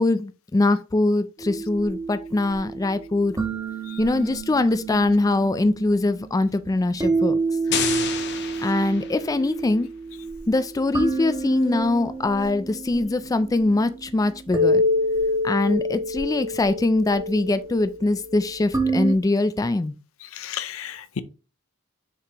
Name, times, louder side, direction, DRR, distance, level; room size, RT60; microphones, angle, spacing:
voice 1, 0.0-3.4 4.0-7.4 8.6-9.9 10.5-14.8 15.4-19.9, left 2 dB, 15° left, 0.3 m, -22 dB
sound 1, 1.4-19.1, right 1 dB, 15° right, 1.4 m, -28 dB
voice 2, 7.7-8.1 20.2-21.2, left 7 dB, 75° left, 0.6 m, -34 dB
sound 2, 7.7-9.5, left 8 dB, 55° left, 0.9 m, -30 dB
6.6 x 4.9 x 2.9 m
head